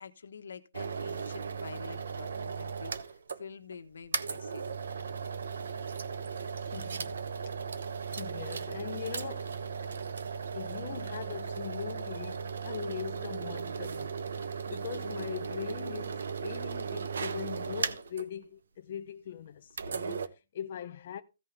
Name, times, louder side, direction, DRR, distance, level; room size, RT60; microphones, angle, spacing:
voice 1, 0.0-4.7, left 6 dB, 75° left, 1.2 m, -47 dB
sound 1, 0.7-3.4 3.7-3.8 4.1-18.3 19.7-20.3, right 6 dB, 65° right, 0.9 m, -36 dB
voice 2, 6.6-7.2 8.0-9.6 10.5-21.2, left 9 dB, 30° left, 0.5 m, -41 dB
16.0 x 5.5 x 3.4 m
hypercardioid pair, 180°, 0 cm